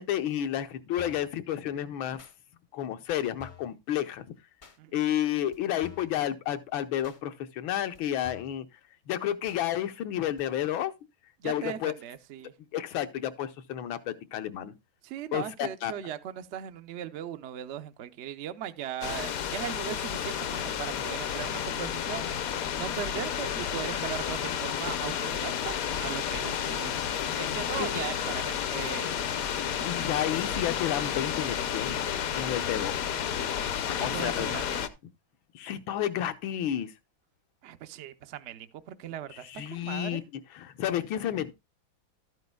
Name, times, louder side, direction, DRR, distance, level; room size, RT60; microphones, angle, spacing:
voice 1, 0.0-2.2 2.7-4.3 4.9-8.7 9.1-10.9 11.4-11.9 12.7-14.7 15.3-15.9 29.8-32.0 32.4-33.1 34.0-34.5 35.5-36.9 39.4-40.2 40.5-41.5, left 11 dB, 80° left, 1.6 m, -31 dB
sound 1, 1.0-1.3 2.2-2.3 3.1-3.2 3.4-3.7 4.6-4.8 5.5-5.6 5.8-6.2 7.0-7.2 7.9-8.0 8.2-8.6 9.5-9.6 10.4-10.5, left 6 dB, 45° left, 0.6 m, -49 dB
voice 2, 11.4-12.5 15.0-22.3 22.7-27.0 27.3-29.2 34.0-34.9 37.6-40.2, right 10 dB, 80° right, 0.6 m, -38 dB
sound 2, 19.0-34.9, left 8 dB, 65° left, 0.9 m, -31 dB
12.5 x 9.4 x 2.3 m
omnidirectional pair, 2.1 m